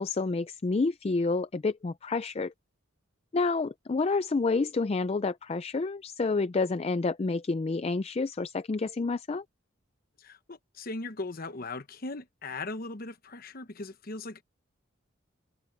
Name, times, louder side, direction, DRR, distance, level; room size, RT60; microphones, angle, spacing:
voice 1, 0.0-2.5 3.3-9.4, left 3 dB, 30° left, 0.4 m, -29 dB
voice 2, 10.2-14.4, left 2 dB, 45° left, 1.0 m, -39 dB
head